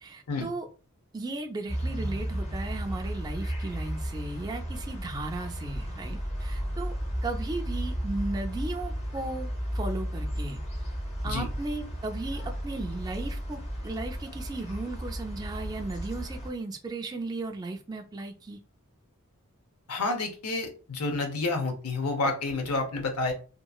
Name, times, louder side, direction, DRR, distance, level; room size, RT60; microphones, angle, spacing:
voice 1, 0.0-0.7 1.1-6.9 7.2-10.6 11.2-18.6, right 2 dB, 15° right, 3 dB, 0.3 m, -36 dB
sound 1, 1.7-16.5, equal, 30° left, 0.7 m, -34 dB
voice 2, 19.9-23.3, left 3 dB, 85° left, 4 dB, 0.7 m, -29 dB
2.9 x 2.4 x 2.3 m, 0.36 s
head